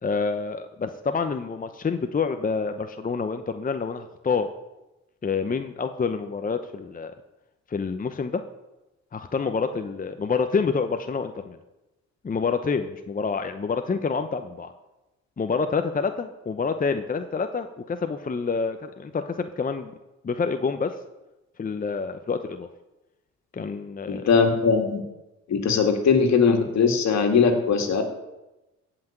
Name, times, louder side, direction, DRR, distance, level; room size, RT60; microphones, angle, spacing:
voice 1, 0.0-4.5 5.2-7.1 7.7-8.4 9.1-11.6 12.2-14.7 15.4-19.9 20.2-20.9 21.6-22.7 23.5-24.3, left 5 dB, 30° left, 8 dB, 0.9 m, -27 dB
voice 2, 24.1-25.0 25.5-28.0, left 5 dB, 65° left, 5 dB, 2.5 m, -20 dB
15.5 x 6.1 x 9.0 m, 1.0 s
cardioid pair, 90°, 30 cm